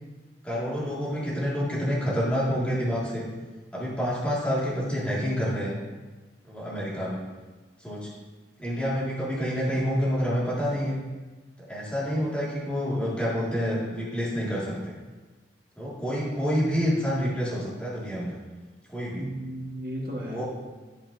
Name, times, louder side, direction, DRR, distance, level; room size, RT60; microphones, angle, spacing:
voice 1, 0.4-3.3 3.7-5.8 6.5-7.2 7.8-8.1 8.6-11.0 11.7-14.9 15.8-18.3 18.9-19.2 20.3-20.4, equal, 5° left, -8 dB, 2.0 m, -28 dB
voice 2, 19.1-20.4, equal, 55° right, -2 dB, 1.5 m, -35 dB
11.0 x 5.2 x 2.7 m, 1.3 s
head